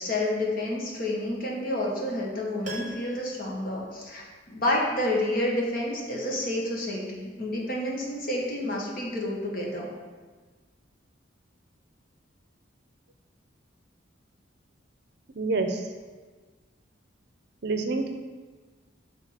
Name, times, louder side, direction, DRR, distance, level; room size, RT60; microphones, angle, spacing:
voice 1, 0.0-9.9, left 1 dB, 45° left, -2 dB, 1.3 m, -29 dB
Piano, 2.6-4.7 5.0-5.1, right 2 dB, 40° right, 1.1 m, -43 dB
voice 2, 15.3-15.8 17.6-18.1, right 3 dB, 55° right, 5 dB, 0.6 m, -27 dB
6.2 x 3.6 x 5.7 m, 1.4 s
head